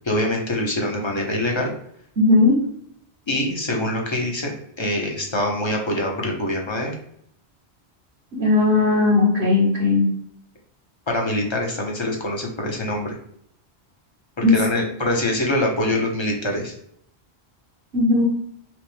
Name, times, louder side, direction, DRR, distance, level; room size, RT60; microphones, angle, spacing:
voice 1, 0.0-1.7 3.3-4.5 4.8-6.9 11.1-13.1 14.4-16.7, left 1 dB, 25° left, 0 dB, 1.0 m, -24 dB
voice 2, 2.2-2.5 8.4-10.1 14.4-14.5 17.9-18.2, left 3 dB, 70° right, -7 dB, 1.7 m, -17 dB
6.1 x 2.5 x 3.4 m, 0.68 s
omnidirectional pair, 1.1 m